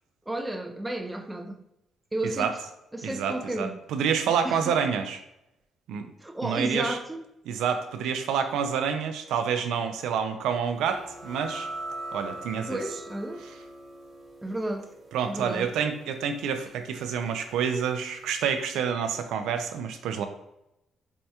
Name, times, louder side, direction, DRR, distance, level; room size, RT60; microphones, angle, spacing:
voice 1, 0.3-1.6 2.1-2.6 2.9-3.8 4.4-4.7 6.2-7.2 12.7-13.5 14.4-14.9 15.3-15.7, right 1 dB, 10° right, 0.4 m, -32 dB
voice 2, 3.0-5.2 5.9-6.1 6.4-7.0 7.5-11.7 12.1-12.8 15.1-20.2, right 7 dB, 85° right, 0.3 m, -28 dB
sound 1, 10.8-18.1, right 1 dB, 50° right, 0.9 m, -42 dB
4.4 x 2.2 x 2.7 m
cardioid pair, 90°, 0 cm